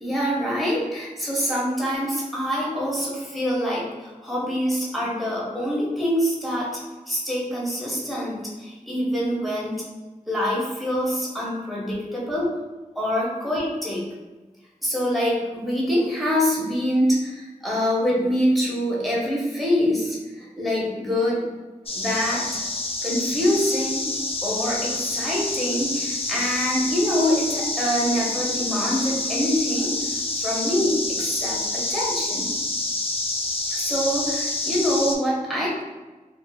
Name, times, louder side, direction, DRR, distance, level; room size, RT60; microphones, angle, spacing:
voice 1, 0.0-9.8 10.3-12.5 13.0-14.0 14.8-21.4 21.9-22.4 23.0-24.1 24.4-32.5 33.7-35.8, equal, ahead, -6 dB, 0.9 m, -25 dB
sound 1, 21.9-35.2, left 2 dB, 45° left, 0.4 m, -27 dB
2.6 x 2.5 x 2.3 m, 1.2 s
wide cardioid pair, 50°, 14 cm